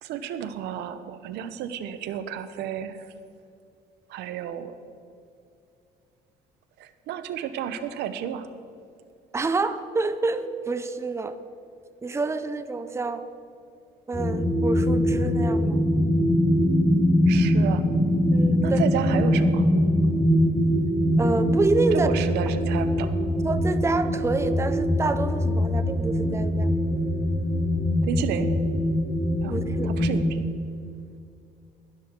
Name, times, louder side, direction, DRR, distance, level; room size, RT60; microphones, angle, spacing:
voice 1, 0.0-3.1 4.1-4.7 6.8-8.5 17.3-17.8 18.6-19.7 21.9-23.1 28.1-28.5 29.4-29.5 29.8-30.4, right 9 dB, 80° right, 10 dB, 0.8 m, -32 dB
voice 2, 9.3-11.3 12.0-13.2 14.1-15.8 18.3-18.8 21.2-22.1 23.4-26.7 29.5-29.9, right 3 dB, 15° right, 10 dB, 0.6 m, -27 dB
sound 1, 14.1-30.2, equal, 10° left, 1.7 m, -23 dB
12.0 x 11.0 x 4.5 m, 2.5 s
cardioid pair, 110°, 17 cm